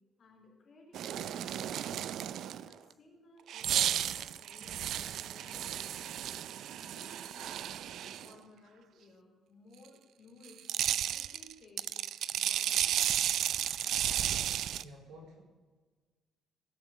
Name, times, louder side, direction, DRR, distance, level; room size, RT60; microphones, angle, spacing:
voice 1, 0.2-2.0 2.6-6.3 6.8-10.7 11.0-13.1, left 2 dB, 40° left, 0 dB, 3.6 m, -59 dB
sound 1, 0.9-2.7 3.5-8.3 10.4-14.8, right 11 dB, 70° right, 0.4 m, -33 dB
voice 2, 14.8-15.4, equal, 90° right, -1 dB, 4.6 m, -51 dB
16.5 x 7.4 x 7.2 m, 1.4 s
cardioid pair, 150°, 0 cm